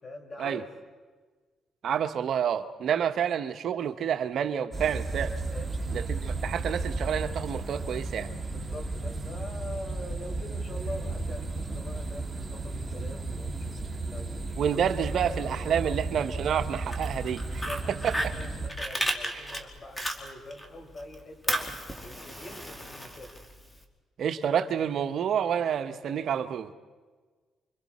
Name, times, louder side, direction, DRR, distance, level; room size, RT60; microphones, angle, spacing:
voice 1, 0.0-0.6 2.9-3.1 5.5-5.8 8.4-13.8 14.0-16.0 16.8-17.0 17.4-21.7 22.0-23.4, left 1 dB, 40° left, 4 dB, 4.2 m, -44 dB
voice 2, 1.8-5.3 5.9-8.3 14.6-18.3 19.3-19.4 24.2-26.7, right 8 dB, 65° right, 8 dB, 1.1 m, -29 dB
sound 1, 4.7-18.7, right 3 dB, 20° right, 2.7 m, -34 dB
Fire, 16.7-20.7 21.0-23.8, equal, 15° left, 2.4 m, -34 dB
30.0 x 24.5 x 4.3 m, 1.4 s
cardioid pair, 90°, 0 cm